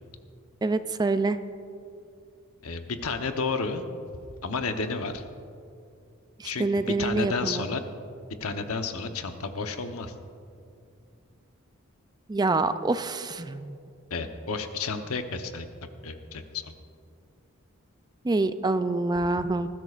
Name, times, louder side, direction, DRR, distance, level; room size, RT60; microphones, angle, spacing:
voice 1, 0.6-1.4 6.4-7.6 12.3-13.8 18.2-19.7, right 3 dB, 20° right, 11 dB, 0.4 m, -26 dB
voice 2, 2.6-3.8 4.4-5.2 6.4-6.7 7.0-7.8 8.4-10.1 14.1-15.7 16.0-16.7, left 4 dB, 90° left, 6 dB, 1.0 m, -31 dB
20.0 x 15.0 x 2.5 m, 2.4 s
head